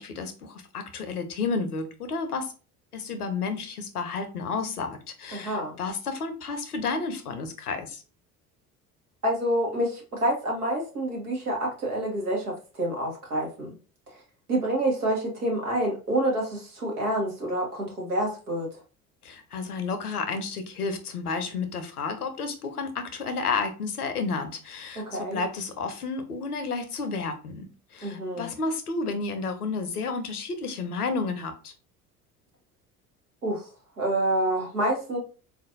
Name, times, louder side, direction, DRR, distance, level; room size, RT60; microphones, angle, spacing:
voice 1, 0.0-2.5 2.9-8.0 19.2-31.7, left 4 dB, 85° left, 8 dB, 0.6 m, -31 dB
voice 2, 5.3-5.8 9.2-13.8 14.5-18.7 24.9-25.4 28.0-28.5 33.4-33.7 34.0-35.2, right 1 dB, 85° right, -1 dB, 1.2 m, -27 dB
3.8 x 2.5 x 2.6 m, 0.35 s
figure-of-eight pair, 60°, 44 cm